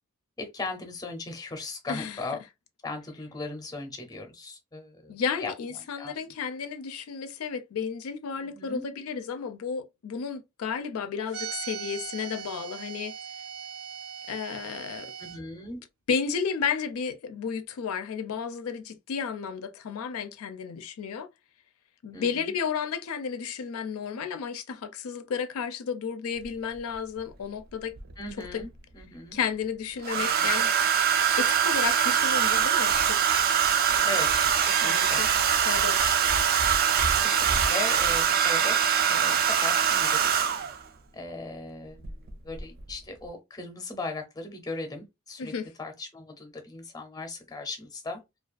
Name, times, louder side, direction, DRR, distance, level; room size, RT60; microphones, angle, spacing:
voice 1, 0.4-2.4 2.8-5.5 6.0-6.3 8.3-8.8 15.2-15.8 22.1-22.5 28.2-29.4 30.1-30.6 34.0-35.2 37.2-40.5 41.1-45.5 45.8-48.2, left 3 dB, 20° left, 0.6 m, -38 dB
voice 2, 1.9-2.2 5.1-13.1 14.3-15.1 16.1-21.3 22.0-27.9 28.4-28.6 29.3-30.7 31.4-33.2 33.9-34.1 34.8-35.3 35.7-36.2 45.4-45.7, left 6 dB, 90° left, 0.4 m, -32 dB
sound 1, 11.3-15.4, right 8 dB, 90° right, 0.7 m, -39 dB
Domestic sounds home sounds, 26.4-26.5 28.0-28.6 30.0-40.8 42.0-42.3 42.6-42.9, right 8 dB, 45° right, 0.4 m, -23 dB
2.3 x 2.3 x 2.3 m
head